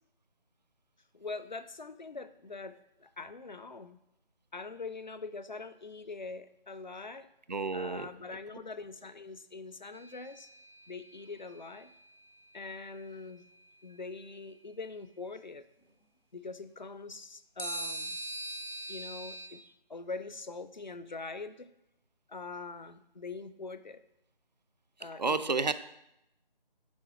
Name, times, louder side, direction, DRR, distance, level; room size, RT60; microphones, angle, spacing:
voice 1, 1.1-4.0 4.5-7.3 7.7-10.5 10.9-11.9 12.5-13.4 13.8-15.6 16.3-18.2 18.9-21.7 22.3-24.0 25.0-25.7, left 3 dB, 50° left, 12 dB, 0.5 m, -43 dB
voice 2, 7.5-8.1 25.2-25.7, right 4 dB, 50° right, 14 dB, 0.4 m, -30 dB
sound 1, 9.9-11.2 17.6-19.5, right 1 dB, 90° left, 1.8 m, -40 dB
9.7 x 3.5 x 5.7 m, 0.83 s
figure-of-eight pair, 160°, 29 cm